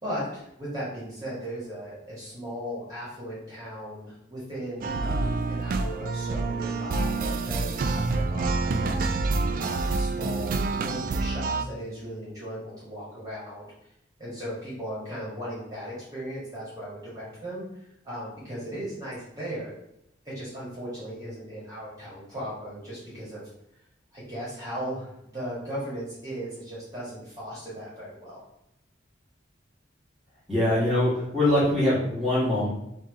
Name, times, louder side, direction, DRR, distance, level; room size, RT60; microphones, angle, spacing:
voice 1, 0.0-9.0 9.6-13.7 14.2-19.7 20.2-23.4 24.1-28.4, equal, 20° right, -8 dB, 1.5 m, -37 dB
sound 1, 4.8-11.6, right 3 dB, 45° right, 0.3 m, -27 dB
voice 2, 30.5-32.7, left 1 dB, ahead, -10 dB, 1.7 m, -23 dB
3.6 x 2.8 x 4.6 m, 0.81 s
head